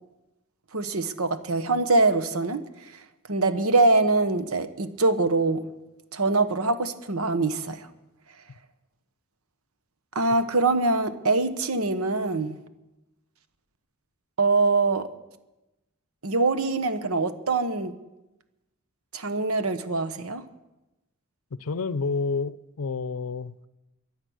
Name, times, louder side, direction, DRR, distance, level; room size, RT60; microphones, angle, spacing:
voice 1, 0.7-2.6 3.3-5.6 6.1-7.9 10.1-12.6 14.4-15.1 16.2-17.9 19.1-20.4, right 3 dB, 80° right, 1.1 m, -23 dB
voice 2, 21.6-23.7, left 4 dB, 75° left, 0.6 m, -29 dB
23.0 x 8.7 x 6.4 m
head